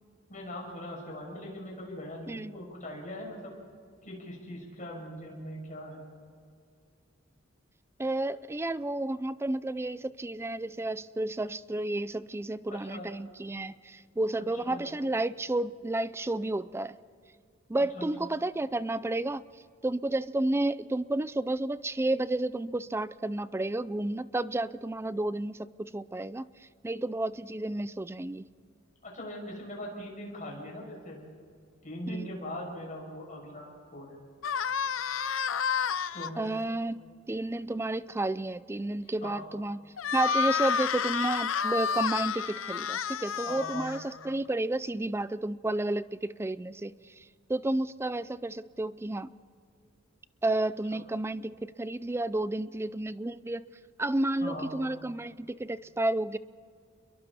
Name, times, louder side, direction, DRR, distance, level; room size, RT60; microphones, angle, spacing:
voice 1, 0.3-3.5 4.0-6.1 12.7-13.1 14.6-14.9 17.8-18.3 29.0-31.2 31.8-34.2 36.1-36.6 39.2-39.4 43.5-43.9 50.9-51.0 54.4-54.7, left 1 dB, 40° left, -2 dB, 6.9 m, -41 dB
voice 2, 8.0-17.0 17.7-19.4 19.8-26.4 26.8-28.5 32.1-32.3 35.9-36.0 36.4-39.8 40.1-47.2 47.5-49.3 50.4-53.7 54.0-56.4, right 2 dB, 15° right, 16 dB, 0.4 m, -31 dB
sound 1, 34.4-36.3 40.0-44.3, left 6 dB, 75° left, 0.7 m, -30 dB
29.5 x 22.5 x 4.3 m, 2.2 s
head